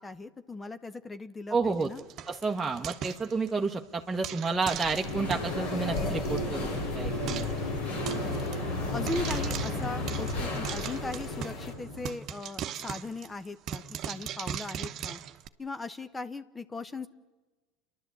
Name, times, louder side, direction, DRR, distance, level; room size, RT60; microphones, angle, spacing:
voice 1, 0.0-2.0 8.2-8.6 8.9-15.2 15.6-17.1, left 3 dB, 20° left, 12 dB, 0.9 m, -38 dB
voice 2, 1.5-1.9 2.3-7.5, right 4 dB, 15° right, 1 dB, 1.1 m, -30 dB
Frying (food), 1.7-3.7 4.2-5.5 6.0-6.1 6.2-6.4 6.7-6.8 7.3-7.6 8.1-8.6 9.1-11.7 12.0-15.5, right 9 dB, 50° right, 1.0 m, -38 dB
sound 1, 4.7-11.7, left 2 dB, 55° left, 3.1 m, -38 dB
sound 2, 5.0-12.1, left 2 dB, 85° left, 4.2 m, -34 dB
29.5 x 11.5 x 8.3 m, 1.2 s
hypercardioid pair, 80°, 0 cm